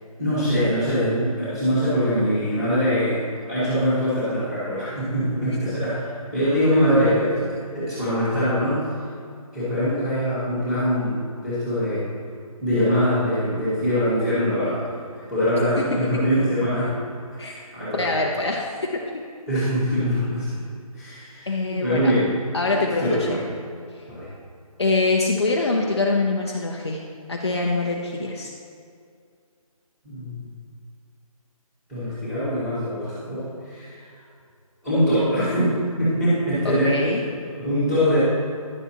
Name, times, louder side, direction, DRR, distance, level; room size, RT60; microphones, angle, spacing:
voice 1, 0.2-8.9 9.5-12.0 12.6-15.0 15.3-16.9 17.4-18.1 19.5-20.5 20.9-22.3 22.7-23.4 24.1-24.3 30.0-30.5 31.9-34.0 34.8-37.0 37.6-38.2, equal, 5° right, -15 dB, 1.8 m, -23 dB
voice 2, 17.9-19.2 21.5-22.1 22.5-23.4 24.8-27.0 27.3-28.5 36.6-37.2, left 3 dB, 45° left, 0 dB, 0.7 m, -24 dB
11.0 x 7.0 x 2.9 m, 2.3 s
figure-of-eight pair, 170°, 19 cm